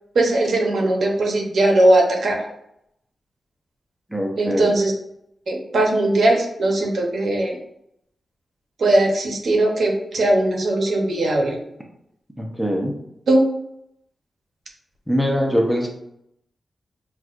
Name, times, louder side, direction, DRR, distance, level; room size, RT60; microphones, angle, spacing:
voice 1, 0.1-2.4 4.4-4.9 5.5-7.6 8.8-11.6 13.3-13.4, right 1 dB, 65° right, 0 dB, 0.8 m, -19 dB
voice 2, 4.1-4.7 12.4-13.0 15.1-15.9, equal, ahead, 0 dB, 0.6 m, -22 dB
5.9 x 2.4 x 2.5 m, 0.78 s
wide cardioid pair, 150°, 0 cm